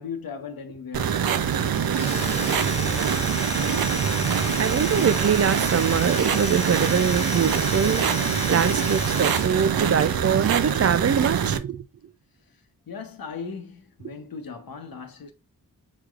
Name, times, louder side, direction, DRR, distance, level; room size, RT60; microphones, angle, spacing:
voice 1, 0.0-3.7 12.4-15.3, left 5 dB, 80° left, 1.0 m, -39 dB
sound 1, 0.9-11.6, right 8 dB, 90° right, 0.6 m, -24 dB
Domestic sounds home sounds, 1.8-9.7, left 2 dB, 20° left, 1.1 m, -32 dB
voice 2, 4.6-8.1 8.5-11.8, right 7 dB, 45° right, 0.4 m, -23 dB
6.7 x 3.1 x 2.4 m
wide cardioid pair, 75°, 34 cm